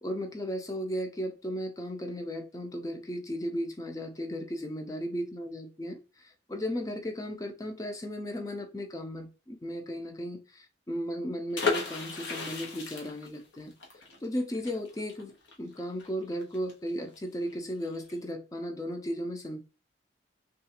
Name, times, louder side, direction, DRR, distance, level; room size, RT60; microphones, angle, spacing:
voice 1, 0.0-13.7 14.2-15.3 15.6-19.6, equal, 20° left, 0.4 m, -35 dB
sound 1, 11.5-17.2 17.5-17.6 17.8-18.1, left 5 dB, 85° left, 0.8 m, -35 dB
3.1 x 2.4 x 2.8 m
head